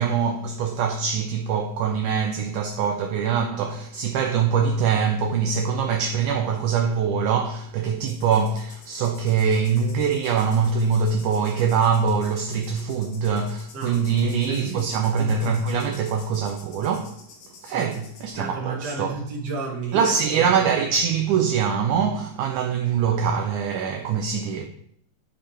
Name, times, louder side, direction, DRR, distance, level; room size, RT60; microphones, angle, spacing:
voice 1, 0.0-17.2 17.6-19.1 19.9-24.7, right 6 dB, 80° right, 1.8 m, -23 dB
sound 1, 8.0-18.3, left 5 dB, 85° left, 3.2 m, -49 dB
voice 2, 13.7-15.3 17.6-17.9 18.3-20.1, right 3 dB, 35° right, 1.8 m, -33 dB
10.0 x 5.5 x 4.3 m
omnidirectional pair, 4.1 m